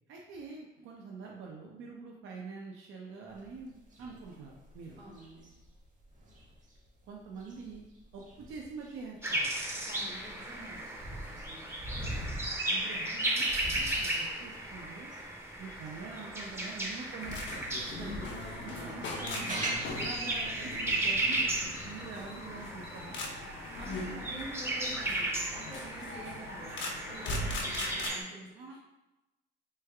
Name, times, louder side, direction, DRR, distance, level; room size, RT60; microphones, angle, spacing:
voice 1, 0.1-5.0 7.0-7.8 8.1-9.5 12.5-15.1 15.6-17.7 18.6-23.2 28.5-28.8, right 4 dB, 80° right, -1 dB, 0.5 m, -45 dB
sound 1, 3.3-17.0 17.4-21.9, right 1 dB, 40° right, 0.8 m, -44 dB
voice 2, 5.0-5.5 9.9-11.6 12.2-12.8 17.8-19.0 22.3-22.5 23.8-28.8, right 1 dB, 65° right, -7 dB, 1.4 m, -47 dB
sound 2, 9.2-28.2, right 1 dB, 10° right, 0.5 m, -35 dB
sound 3, 17.2-28.1, left 2 dB, 65° left, 0.6 m, -40 dB
3.2 x 2.2 x 3.3 m, 1.0 s
cardioid pair, 90°, 20 cm